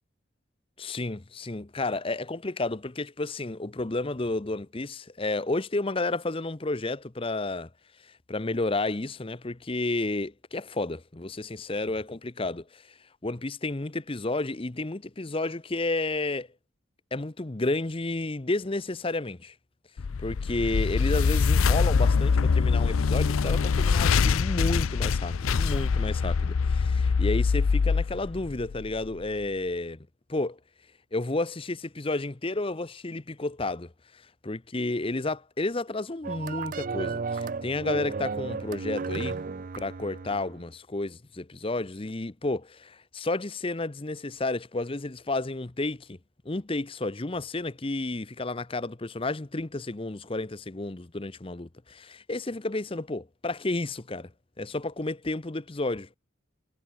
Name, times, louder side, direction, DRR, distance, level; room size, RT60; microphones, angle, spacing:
voice 1, 0.8-7.7 8.0-13.0 13.2-16.5 17.1-19.5 20.2-30.0 30.3-30.6 31.1-39.4 39.7-46.2 46.4-54.3 54.6-56.1, left 2 dB, 25° left, 0.8 m, -31 dB
sound 1, 20.0-29.1, left 5 dB, 80° left, 0.5 m, -24 dB
sound 2, 36.2-40.6, right 4 dB, 40° right, 0.4 m, -34 dB
head